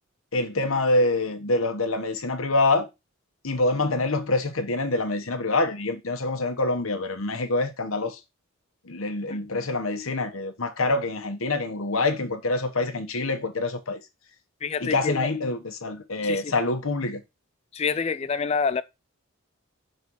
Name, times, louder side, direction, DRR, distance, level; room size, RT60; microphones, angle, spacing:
voice 1, 0.3-2.9 3.4-8.2 8.9-14.0 14.8-17.2, left 2 dB, 80° left, 1.1 m, -26 dB
voice 2, 14.6-15.2 16.2-16.5 17.7-18.8, left 5 dB, 30° left, 0.3 m, -27 dB
5.5 x 4.0 x 6.1 m
head